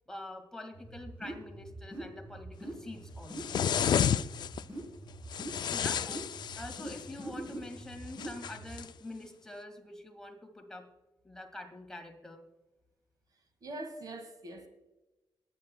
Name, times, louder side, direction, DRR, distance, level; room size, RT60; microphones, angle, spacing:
voice 1, 0.1-3.6 5.6-10.9 11.2-12.4, left 1 dB, 5° left, 1.9 m, -46 dB
sound 1, 0.7-8.8, right 1 dB, 15° right, 3.6 m, -44 dB
sound 2, 3.3-4.6 5.3-7.1 8.2-8.9, left 8 dB, 60° left, 0.4 m, -31 dB
voice 2, 13.6-14.7, right 1 dB, 50° right, 1.8 m, -42 dB
20.5 x 9.8 x 2.2 m
cardioid pair, 110°, 8 cm